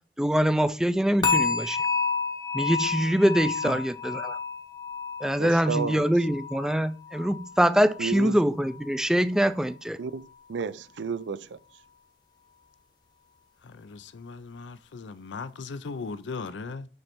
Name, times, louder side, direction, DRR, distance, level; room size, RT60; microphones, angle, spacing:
voice 1, 0.2-1.9 2.5-4.4 5.2-10.0, equal, 5° right, 0.3 m, -24 dB
sound 1, 1.2-8.3 8.6-9.0 9.5-9.6, left 4 dB, 25° left, 0.8 m, -31 dB
voice 2, 5.4-6.0 8.0-8.4 10.0-11.6, right 5 dB, 80° right, 0.4 m, -32 dB
voice 3, 13.7-16.9, left 4 dB, 75° left, 0.5 m, -38 dB
6.5 x 3.2 x 4.4 m
head